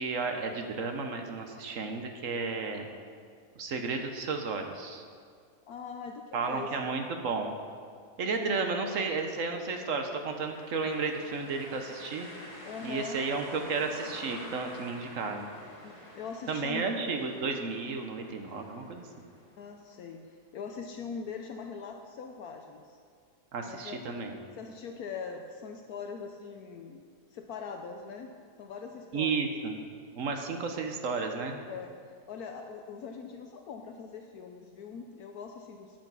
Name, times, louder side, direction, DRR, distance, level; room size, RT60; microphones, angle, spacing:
voice 1, 0.0-2.9 3.6-5.0 6.3-7.5 8.2-12.3 12.8-15.5 16.5-19.0 23.5-24.4 29.1-29.8 30.1-31.6, right 4 dB, 55° right, 4 dB, 1.1 m, -33 dB
voice 2, 5.7-7.0 12.6-13.2 15.8-16.8 19.6-23.0 23.7-24.0 24.5-27.0 27.3-28.3 28.6-29.5 31.7-32.0 32.3-36.0, left 5 dB, 70° left, 4 dB, 1.1 m, -42 dB
sound 1, 10.2-20.0, left 1 dB, 20° left, 1.4 m, -48 dB
8.8 x 8.2 x 6.1 m, 2.1 s
omnidirectional pair, 1.7 m